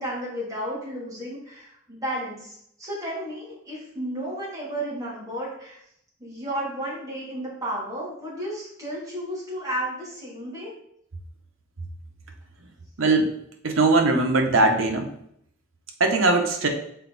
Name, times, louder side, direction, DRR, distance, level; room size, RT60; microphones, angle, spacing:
voice 1, 0.0-5.8 6.2-10.7, right 1 dB, 20° right, -6 dB, 2.8 m, -33 dB
voice 2, 13.0-13.3 13.6-15.1 16.0-16.7, right 2 dB, 80° right, 4 dB, 1.1 m, -20 dB
6.8 x 4.4 x 4.0 m, 0.73 s
head